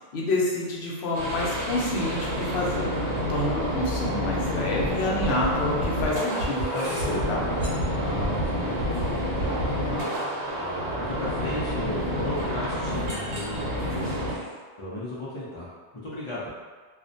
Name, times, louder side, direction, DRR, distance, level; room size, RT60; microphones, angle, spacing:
voice 1, 0.1-2.9 3.3-7.5, left 1 dB, 70° left, -3 dB, 0.8 m, -28 dB
sound 1, 1.1-14.4, equal, 80° right, 1.0 m, -29 dB
sound 2, 4.5-4.6 5.3-11.5 12.1-12.5 12.8-13.1, left 1 dB, 10° left, 1.0 m, -40 dB
sound 3, 4.8-4.9 5.2-5.5 5.8-6.1 6.4-6.7 7.0-7.3 7.6-7.9 8.2-8.5 8.8-9.1 9.4-9.7, right 1 dB, 65° right, 0.8 m, -29 dB
voice 2, 7.8-16.5, left 1 dB, 40° left, -9 dB, 0.4 m, -36 dB
2.4 x 2.1 x 2.5 m, 1.5 s
omnidirectional pair, 1.1 m